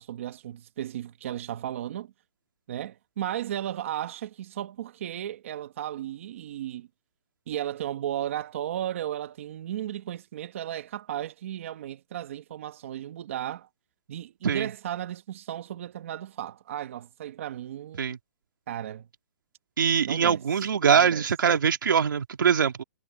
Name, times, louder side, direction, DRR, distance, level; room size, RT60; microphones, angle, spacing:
voice 1, 0.0-2.1 2.7-6.9 7.5-13.7 14.1-18.0 18.7-19.1 20.0-20.4 20.9-21.2, right 11 dB, 40° right, 1.1 m, -35 dB
voice 2, 19.8-22.8, right 7 dB, 85° right, 2.9 m, -23 dB
hypercardioid pair, 175°, 11 cm